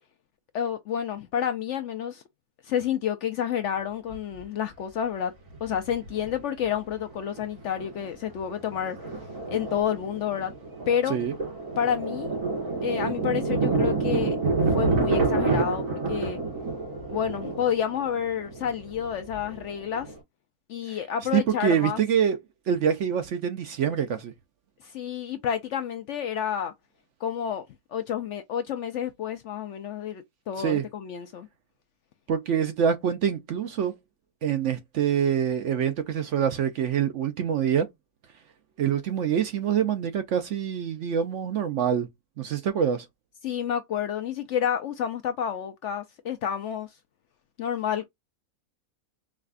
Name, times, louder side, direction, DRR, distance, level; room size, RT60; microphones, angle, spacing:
voice 1, 0.5-2.2 2.6-5.3 5.6-9.0 9.5-10.5 10.9-11.2 11.8-12.3 12.8-14.4 14.7-16.4 17.1-20.1 20.7-22.0 24.8-26.7 27.2-27.6 27.9-31.5 43.4-46.9 47.6-48.1, left 9 dB, 65° left, 0.7 m, -29 dB
Thunder, 4.1-4.2 5.5-6.3 6.6-6.7 7.1-7.4 7.8-20.2, right 3 dB, 90° right, 2.8 m, -28 dB
voice 2, 21.3-22.4 22.7-24.3 30.6-30.9 32.3-33.9 34.4-37.9 38.8-42.1 42.4-43.1, right 8 dB, 65° right, 0.8 m, -25 dB
4.8 x 2.3 x 2.4 m
omnidirectional pair, 1.6 m